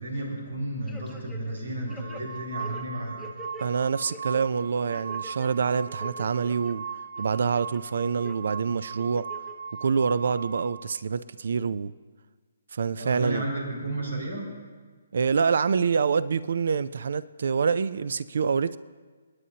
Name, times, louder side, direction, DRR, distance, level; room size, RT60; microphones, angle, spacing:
voice 1, 0.0-3.2 13.0-14.4, right 1 dB, 90° right, 5.2 m, -32 dB
sound 1, 0.9-1.6 1.9-3.7 4.1-4.4 4.9-5.5 5.9-6.7 7.2-7.8 8.2-8.4 9.0-9.5 9.9-10.0, equal, ahead, 0.8 m, -45 dB
sound 2, 1.9-10.7, right 6 dB, 35° right, 1.4 m, -38 dB
voice 2, 3.6-6.9 7.2-9.3 9.8-11.9 12.7-13.5 15.1-18.8, right 5 dB, 60° right, 0.4 m, -26 dB
28.0 x 9.9 x 2.8 m
hypercardioid pair, 170°, 0 cm